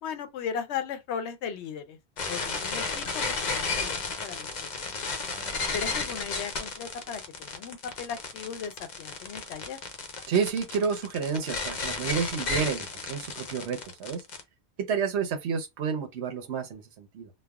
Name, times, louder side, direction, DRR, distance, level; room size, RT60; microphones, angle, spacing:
voice 1, 0.0-2.0 2.3-4.5 4.8-5.0 5.7-9.8, left 7 dB, 90° left, 0.9 m, -37 dB
sound 1, 2.2-14.4, left 4 dB, 50° left, 0.6 m, -33 dB
voice 2, 10.3-14.2 14.9-17.3, right 6 dB, 80° right, 1.0 m, -30 dB
3.2 x 2.0 x 2.3 m
omnidirectional pair, 1.1 m